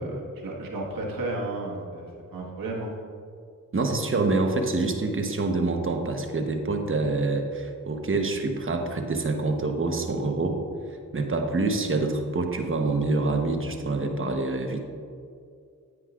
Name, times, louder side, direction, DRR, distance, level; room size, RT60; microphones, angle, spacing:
voice 1, 0.0-2.9, right 2 dB, 85° right, -2 dB, 1.5 m, -33 dB
voice 2, 3.7-10.6 11.1-14.8, right 3 dB, 40° right, 4 dB, 1.0 m, -26 dB
9.4 x 9.4 x 2.4 m, 2.4 s
cardioid pair, 60°, 33 cm